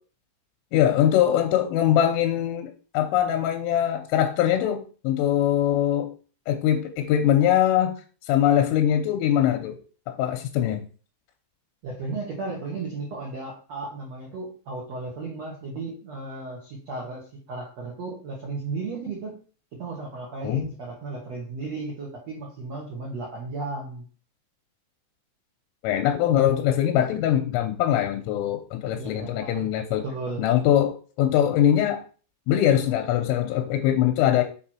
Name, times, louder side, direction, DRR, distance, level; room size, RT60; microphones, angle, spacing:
voice 1, 0.7-6.1 6.5-8.0 8.3-9.8 10.1-10.8 20.4-20.7 25.8-30.0 30.4-32.0 32.5-34.4, left 11 dB, 90° left, 6 dB, 3.3 m, -22 dB
voice 2, 11.8-17.2 17.5-19.4 19.7-24.0 28.8-30.4, right 3 dB, 85° right, -3 dB, 1.5 m, -35 dB
7.2 x 4.8 x 4.4 m, 0.39 s
omnidirectional pair, 5.8 m